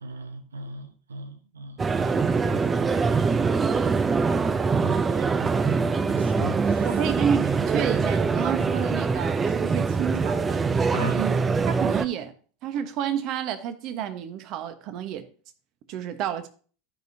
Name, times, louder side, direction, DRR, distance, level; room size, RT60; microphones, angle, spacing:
voice 1, 0.0-2.6 4.8-5.0 5.3-6.9 10.9-11.2, right 2 dB, 85° right, 0.9 m, -38 dB
sound 1, 1.8-12.1, right 5 dB, 25° right, 0.6 m, -23 dB
voice 2, 6.8-10.6 11.1-12.3 12.6-15.2 15.9-16.5, right 9 dB, 50° right, 1.2 m, -30 dB
13.0 x 5.3 x 2.8 m
hypercardioid pair, 85°, 0 cm